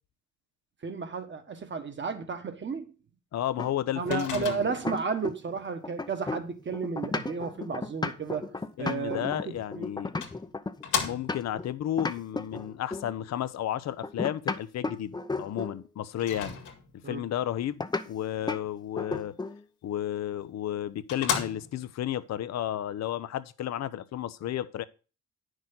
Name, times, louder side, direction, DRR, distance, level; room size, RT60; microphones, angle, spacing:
voice 1, 0.8-2.9 4.0-8.4 8.8-9.9 17.0-17.2, right 5 dB, 40° right, 1.5 m, -33 dB
voice 2, 3.3-4.7 8.8-10.1 11.0-16.6 17.1-19.3 19.8-24.8, left 11 dB, 60° left, 0.7 m, -32 dB
sound 1, 3.6-5.6 5.8-11.7 12.0-13.1 14.0-15.8 17.8-18.1 18.5-18.7 19.0-19.6, left 3 dB, 15° left, 0.7 m, -34 dB
Microwave oven, 4.1-5.0 9.4-9.5 10.2-11.6 16.2-17.1 20.2-20.3 20.7-20.8 21.1-22.0, left 7 dB, 90° left, 2.0 m, -34 dB
9.1 x 6.4 x 3.9 m
cardioid pair, 90°, 30 cm